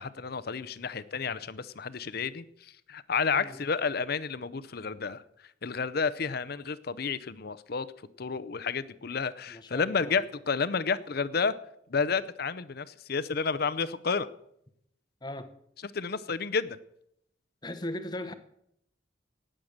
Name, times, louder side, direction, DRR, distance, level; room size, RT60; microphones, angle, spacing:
voice 1, 0.0-5.2 5.6-7.9 8.2-11.5 11.9-14.3 15.9-16.8, left 5 dB, 50° left, 15 dB, 0.6 m, -31 dB
voice 2, 9.5-10.2 15.2-15.5 17.6-18.3, left 1 dB, 20° left, 11 dB, 0.8 m, -38 dB
18.0 x 7.6 x 6.6 m, 0.76 s
head